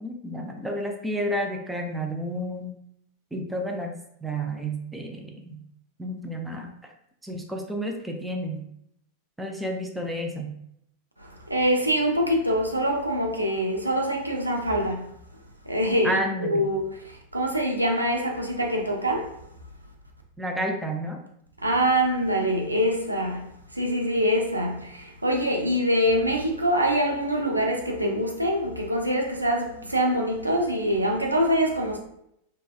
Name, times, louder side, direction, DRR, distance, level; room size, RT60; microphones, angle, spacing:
voice 1, 0.0-2.7 3.3-3.9 4.2-5.6 6.0-6.9 7.2-8.6 9.4-10.6 16.0-16.7 20.4-21.2, equal, 5° right, 0.4 m, -31 dB
voice 2, 11.2-15.1 15.7-19.4 21.6-32.0, equal, 85° right, 0.4 m, -25 dB
3.2 x 2.2 x 2.3 m
figure-of-eight pair, 90°, 0 cm